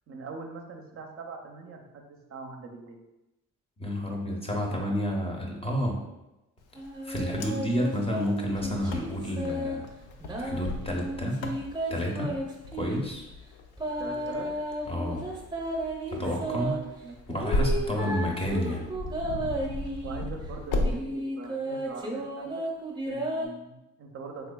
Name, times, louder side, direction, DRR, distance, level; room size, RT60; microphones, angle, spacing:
voice 1, 0.1-3.0 14.0-14.5 16.2-17.5 17.9-18.3 20.0-22.6 23.1-24.5, right 4 dB, 50° right, 2 dB, 0.5 m, -42 dB
voice 2, 3.8-6.0 7.0-9.9 10.4-11.4 11.9-12.4 12.7-13.3 14.9-15.2 16.1-16.7 17.3-18.9, equal, 20° left, 0 dB, 0.6 m, -30 dB
Wind, 6.8-20.9, left 2 dB, 85° left, 0.5 m, -35 dB
sound 1, 6.8-9.8 10.2-13.0 13.8-16.8 17.3-20.3 20.8-23.5, right 1 dB, 15° right, 0.7 m, -33 dB
3.4 x 3.3 x 2.2 m, 0.95 s
cardioid pair, 90°, 30 cm